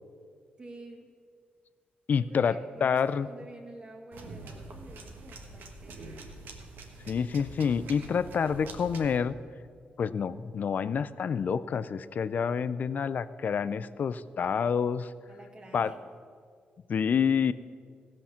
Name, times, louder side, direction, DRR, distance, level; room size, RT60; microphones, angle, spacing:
voice 1, 0.6-1.1 2.2-6.3 15.3-16.0, right 2 dB, 30° right, 2 dB, 1.7 m, -49 dB
voice 2, 2.1-3.3 7.1-9.4 10.0-15.1 15.7-15.9 16.9-17.5, left 6 dB, 55° left, 15 dB, 0.4 m, -28 dB
sound 1, 4.1-9.2, right 3 dB, 85° right, 1.3 m, -45 dB
16.0 x 5.9 x 7.1 m, 2.1 s
cardioid pair, 95°, 3 cm